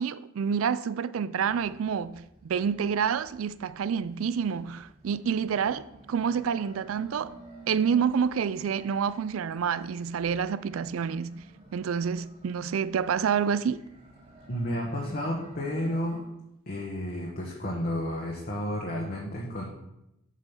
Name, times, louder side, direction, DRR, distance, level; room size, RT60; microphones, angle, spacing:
voice 1, 0.0-7.3 7.7-11.4 11.7-13.8, right 7 dB, 85° right, 0.4 m, -28 dB
sound 1, 1.4-16.2, right 1 dB, 30° right, 3.0 m, -52 dB
voice 2, 14.5-16.2 16.7-19.7, left 1 dB, 45° left, 1.3 m, -31 dB
7.6 x 5.3 x 5.5 m
head